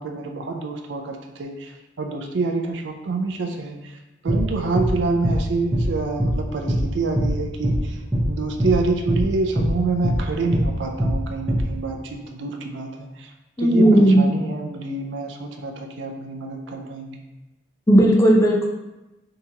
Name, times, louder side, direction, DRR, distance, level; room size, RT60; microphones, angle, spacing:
voice 1, 0.0-4.0 4.2-13.3 13.6-17.2, right 3 dB, 75° right, 3 dB, 0.4 m, -27 dB
sound 1, 4.3-4.4 4.8-4.9 5.2-5.4 5.7-5.9 6.2-6.4 6.7-6.8 7.1-7.3 7.6-7.8 8.1-8.3 8.6-8.8 9.1-9.2 9.6-9.7 10.0-10.2 10.5-10.7 11.0-11.2 11.5-11.6, equal, 15° right, 0.8 m, -21 dB
voice 2, 13.6-14.2 17.9-18.7, right 1 dB, 15° left, -1 dB, 0.4 m, -14 dB
3.6 x 2.8 x 2.7 m, 1.0 s
head